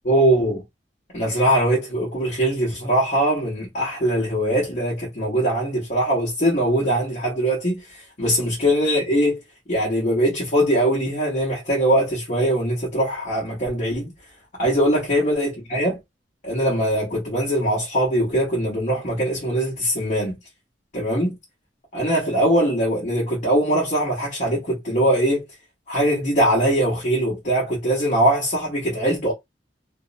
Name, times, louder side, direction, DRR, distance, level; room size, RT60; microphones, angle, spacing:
voice 1, 0.0-0.6 1.1-9.4 9.7-14.1 14.6-16.0 16.4-20.4 20.9-21.4 21.9-25.4 25.9-29.3, right 1 dB, 45° left, 1.0 m, -21 dB
2.6 x 2.0 x 2.5 m
head